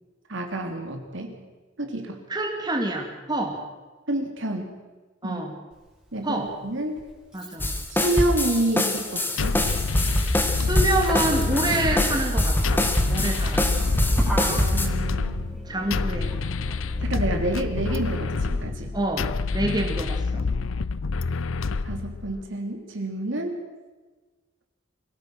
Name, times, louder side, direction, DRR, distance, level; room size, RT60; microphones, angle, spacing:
voice 1, 0.3-1.3 1.8-2.2 4.1-4.7 5.2-5.4 6.1-7.0 7.9-9.6 14.5-15.4 17.0-18.9 21.8-23.5, right 1 dB, 65° right, 4 dB, 3.2 m, -28 dB
voice 2, 2.3-3.6 5.2-5.5 6.2-6.5 7.3-7.7 10.2-13.7 15.7-16.4 18.9-20.5, right 1 dB, 20° right, 2 dB, 2.4 m, -27 dB
Motor vehicle (road), 5.7-5.8 7.0-18.1, equal, 5° right, 4.8 m, -33 dB
sound 1, 7.6-14.9, left 1 dB, 10° left, 1.9 m, -24 dB
sound 2, 9.4-22.4, left 4 dB, 75° left, 0.6 m, -28 dB
24.5 x 17.0 x 6.4 m, 1.3 s
head